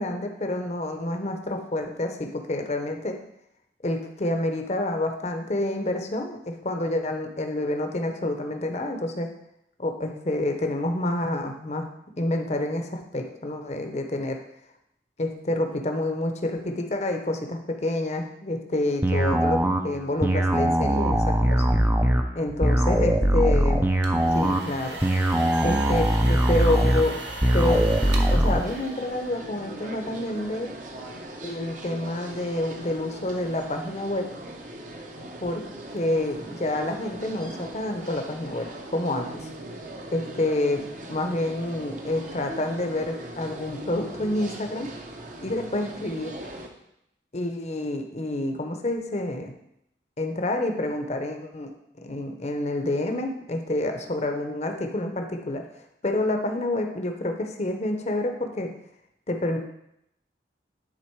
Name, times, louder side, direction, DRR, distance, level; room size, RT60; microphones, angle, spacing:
voice 1, 0.0-3.2 3.8-9.3 9.8-11.9 12.2-14.4 15.2-21.7 22.3-23.8 24.3-25.0 25.6-27.2 27.5-30.7 31.4-34.3 35.4-35.6 35.9-39.5 40.1-44.9 45.4-46.4 47.3-49.5 50.2-51.7 52.0-55.6 56.0-58.7 59.3-59.6, left 1 dB, 40° left, 4 dB, 0.8 m, -28 dB
sound 1, 19.0-28.6, right 1 dB, 10° right, 0.5 m, -21 dB
sound 2, 23.8-29.5, right 2 dB, 85° right, 1.1 m, -38 dB
sound 3, 27.6-46.7, right 1 dB, 45° right, 0.9 m, -40 dB
10.0 x 4.0 x 4.7 m, 0.80 s
head